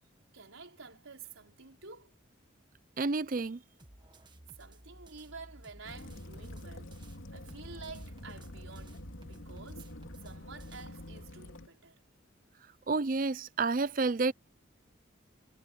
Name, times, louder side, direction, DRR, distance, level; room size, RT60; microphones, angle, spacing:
voice 1, 0.3-2.2 4.6-7.0 7.3-12.0, right 4 dB, 85° right, 5.1 m, -50 dB
voice 2, 3.0-3.6 12.9-14.3, right 3 dB, 40° right, 0.5 m, -30 dB
sound 1, 3.8-7.2 7.5-10.9, right 1 dB, 20° right, 1.5 m, -55 dB
Waves surf / Splash splatter / Trickle dribble, 5.8-11.7, left 1 dB, 80° left, 2.7 m, -46 dB
head